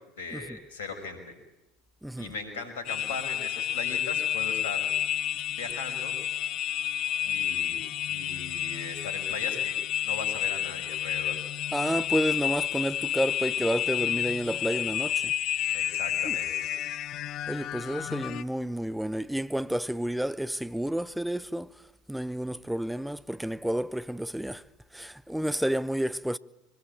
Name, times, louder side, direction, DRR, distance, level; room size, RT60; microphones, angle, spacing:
voice 1, 0.2-1.3 2.2-4.9 5.6-6.1 7.2-9.8 10.0-11.3 15.7-16.7, left 4 dB, 75° left, 6.0 m, -38 dB
voice 2, 2.0-2.3 11.7-15.3 16.2-16.4 17.5-21.7 22.1-24.6 24.9-26.4, right 1 dB, 5° right, 0.8 m, -30 dB
sound 1, 2.8-18.4, left 11 dB, 50° left, 1.0 m, -30 dB
24.0 x 20.5 x 9.0 m
hypercardioid pair, 80°, 0 cm